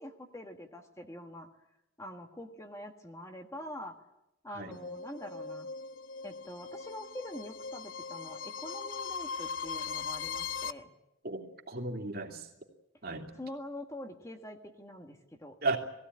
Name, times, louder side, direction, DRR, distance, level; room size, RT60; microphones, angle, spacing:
voice 1, 0.0-1.5 2.0-3.9 4.4-5.7 6.2-10.9 13.3-15.6, left 1 dB, 15° left, 4 dB, 1.6 m, -45 dB
sound 1, 4.7-10.7, left 5 dB, 80° left, 0.9 m, -39 dB
voice 2, 11.2-12.5 13.0-13.3 15.6-15.8, right 3 dB, 50° right, 3 dB, 2.9 m, -34 dB
21.0 x 16.5 x 9.8 m, 0.88 s
head